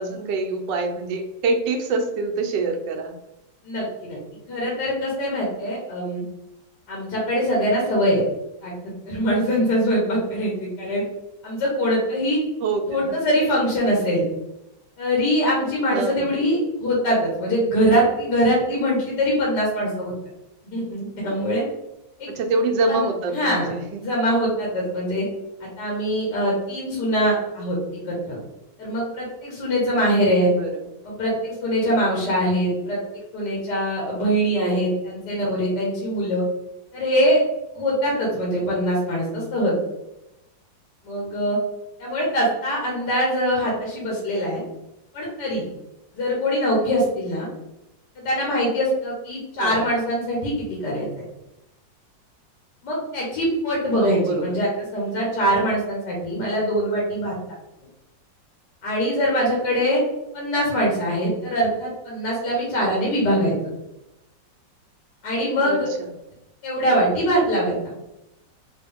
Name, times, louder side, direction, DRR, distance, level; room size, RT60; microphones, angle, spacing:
voice 1, 0.0-3.1 12.6-13.2 15.9-16.3 22.4-24.0 30.6-30.7 34.6-35.0 49.6-49.9 53.9-54.6 65.7-65.8, right 3 dB, 75° right, 3 dB, 1.3 m, -25 dB
voice 2, 3.6-4.2 4.5-6.2 6.9-8.2 8.6-8.7 9.1-11.0 11.4-12.4 12.9-14.2 15.0-20.1 20.6-21.6 22.2-22.3 22.9-23.1 23.3-23.7 24.0-25.2 25.6-27.8 28.1-28.4 28.8-30.5 31.0-33.0 33.3-36.4 36.9-37.4 37.7-39.8 41.0-41.6 42.0-44.6 45.1-45.6 46.1-47.5 48.3-50.5 50.8-51.2 52.8-57.6 58.8-60.0 60.3-63.5 65.2-65.9 66.6-67.9, equal, 70° left, -4 dB, 1.8 m, -23 dB
4.3 x 3.0 x 3.5 m, 0.90 s
omnidirectional pair, 2.0 m